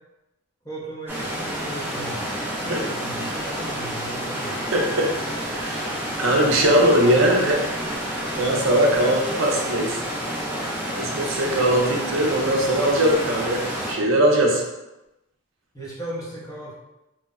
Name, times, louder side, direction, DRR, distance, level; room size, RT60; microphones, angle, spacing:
voice 1, 0.6-2.2 2.6-4.6 15.7-16.7, right 1 dB, 15° left, -7 dB, 0.7 m, -36 dB
sound 1, 1.1-13.9, equal, 10° right, 0.4 m, -29 dB
voice 2, 4.7-5.1 5.5-10.0 11.0-14.6, right 1 dB, 70° right, 0 dB, 0.5 m, -21 dB
3.0 x 2.0 x 2.3 m, 0.95 s
head